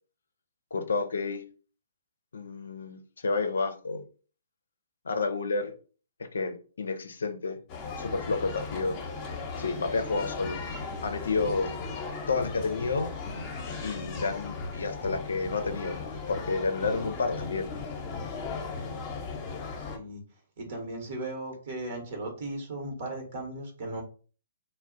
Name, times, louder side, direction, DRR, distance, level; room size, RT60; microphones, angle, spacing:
voice 1, 0.7-1.4 2.3-4.0 5.0-5.7 6.3-7.6 8.0-9.0 9.6-10.6 11.0-11.7 12.3-13.1 13.8-16.0 16.3-17.7, left 4 dB, 75° left, 0.4 m, -30 dB
sound 1, 7.7-20.0, left 4 dB, 25° left, 0.8 m, -37 dB
voice 2, 19.8-20.2 20.6-24.0, right 2 dB, 50° right, 1.1 m, -37 dB
2.3 x 2.0 x 3.8 m
hypercardioid pair, 130°, 0 cm